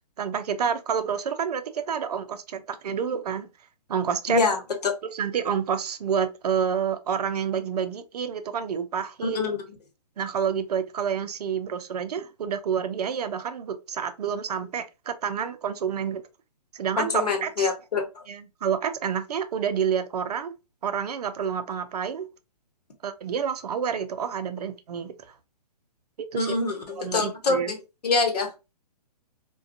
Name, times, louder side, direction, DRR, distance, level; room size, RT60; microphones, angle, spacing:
voice 1, 0.2-3.5 3.9-4.4 5.0-9.4 10.2-16.2 16.7-17.7 18.3-20.5 20.8-22.3 23.0-25.2 26.3-26.6 26.9-27.7, right 7 dB, 70° right, 0.4 m, -28 dB
voice 2, 9.2-9.6 17.0-18.0 26.3-27.8 28.0-28.5, left 4 dB, 75° left, 0.9 m, -25 dB
2.5 x 2.2 x 2.4 m
hypercardioid pair, 135°, 21 cm